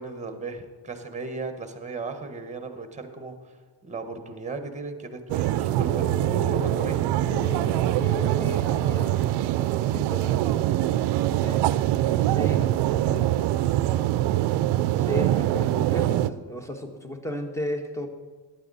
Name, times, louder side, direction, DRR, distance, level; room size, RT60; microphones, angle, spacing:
voice 1, 0.0-3.6 3.8-7.3, right 3 dB, 15° right, 7 dB, 1.4 m, -36 dB
sound 1, 5.3-16.3, right 14 dB, 60° right, 0.6 m, -24 dB
sound 2, 5.6-9.8, left 3 dB, 20° left, 4.3 m, -38 dB
voice 2, 7.3-9.4 9.9-10.7 11.3-11.6 12.2-13.3 15.0-18.1, left 1 dB, 5° left, 6 dB, 1.3 m, -35 dB
14.5 x 10.5 x 4.2 m, 1.4 s
cardioid pair, 110°, 48 cm